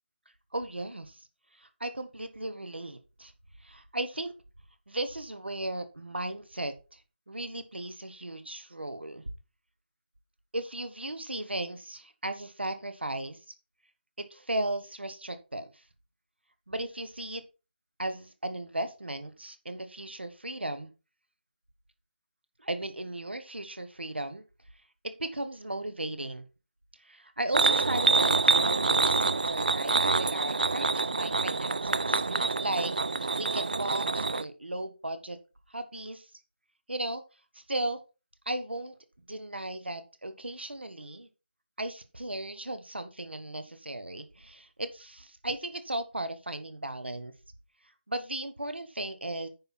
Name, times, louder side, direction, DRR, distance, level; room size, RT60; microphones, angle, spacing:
voice 1, 0.5-1.3 1.5-3.3 3.6-4.3 4.9-7.0 7.3-9.2 10.5-13.4 14.2-15.7 16.7-17.4 18.0-20.9 22.6-24.4 25.0-26.4 27.0-32.9 33.4-35.4 35.7-36.3 36.9-37.2 37.5-38.0 38.4-39.0 39.3-41.3 41.8-47.3 48.1-49.5, right 1 dB, 70° right, 10 dB, 1.3 m, -36 dB
sound 1, 27.5-34.4, right 3 dB, 45° right, 0.4 m, -26 dB
9.4 x 5.9 x 4.3 m, 0.31 s
figure-of-eight pair, 160°, 6 cm